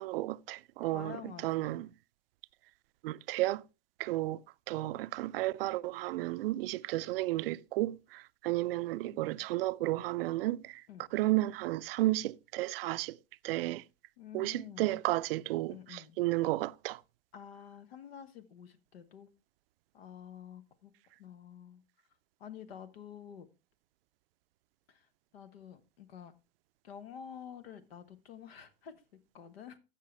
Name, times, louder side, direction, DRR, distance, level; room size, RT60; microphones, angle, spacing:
voice 1, 0.0-1.2 1.4-1.9 3.0-3.6 4.0-4.4 4.7-10.8 11.1-13.2 13.4-13.8 14.3-17.0, right 17 dB, 75° right, 0.4 m, -33 dB
voice 2, 0.8-1.8 9.0-9.4 10.9-11.1 14.2-15.0 15.7-16.2 17.3-19.3 19.9-20.9 21.2-21.8 22.4-23.5 24.9-26.3 26.8-29.8, left 8 dB, 85° left, 1.2 m, -49 dB
15.0 x 5.6 x 3.2 m
hypercardioid pair, 110°, 29 cm